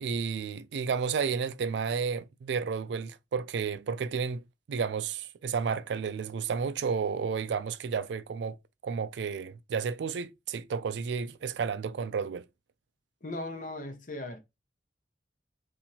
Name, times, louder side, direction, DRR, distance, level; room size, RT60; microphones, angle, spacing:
voice 1, 0.0-4.4 4.7-8.6 8.8-12.5, right 6 dB, 75° right, 0.3 m, -32 dB
voice 2, 13.2-14.4, left 2 dB, 50° left, 0.8 m, -38 dB
2.8 x 2.6 x 4.0 m
head